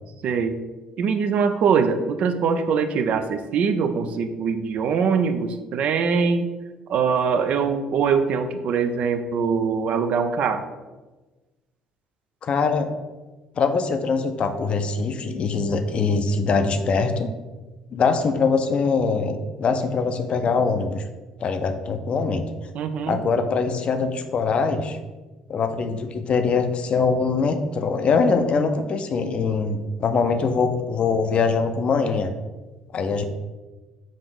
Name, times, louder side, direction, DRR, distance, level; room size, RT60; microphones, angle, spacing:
voice 1, 0.2-0.6 1.0-6.5 6.9-10.6 22.7-23.2, right 6 dB, 55° right, 8 dB, 0.4 m, -22 dB
voice 2, 12.4-12.9 13.6-17.3 17.9-21.0 21.4-22.4 23.1-25.0 25.5-32.3 32.9-33.2, left 4 dB, 45° left, 7 dB, 0.4 m, -23 dB
4.9 x 2.5 x 3.7 m, 1.2 s
hypercardioid pair, 55°, 3 cm